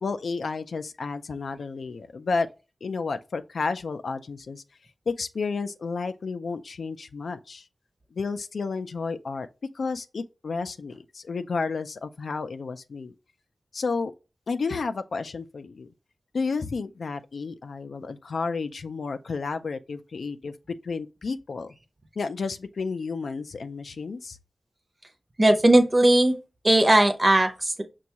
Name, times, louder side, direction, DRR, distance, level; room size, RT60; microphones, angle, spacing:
voice 1, 0.0-2.5 2.8-4.6 5.1-7.7 8.1-9.5 9.7-13.1 13.7-14.1 14.5-15.9 16.3-20.5 20.8-21.7 22.2-24.4, left 4 dB, 85° left, 0.3 m, -31 dB
voice 2, 25.4-26.3 26.6-27.8, right 1 dB, 30° right, 0.6 m, -18 dB
6.1 x 2.3 x 2.8 m
wide cardioid pair, 95°, 0 cm